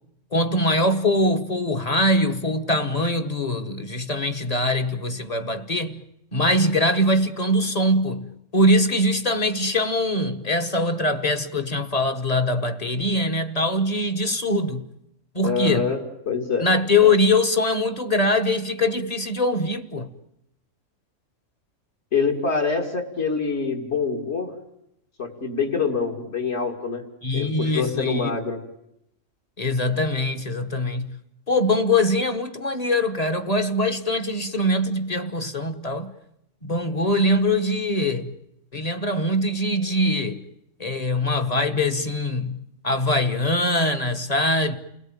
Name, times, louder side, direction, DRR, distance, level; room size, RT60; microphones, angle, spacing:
voice 1, 0.3-6.0 6.3-14.8 15.3-15.9 16.6-20.1 27.2-28.4 29.6-31.2 31.5-36.1 36.6-38.3 38.7-40.4 40.8-44.8, left 1 dB, 30° left, 1.3 m, -22 dB
voice 2, 15.4-16.0 16.3-16.7 22.1-24.5 25.2-27.0 27.3-28.6, left 5 dB, 55° left, 2.8 m, -25 dB
29.5 x 18.5 x 8.9 m
omnidirectional pair, 1.4 m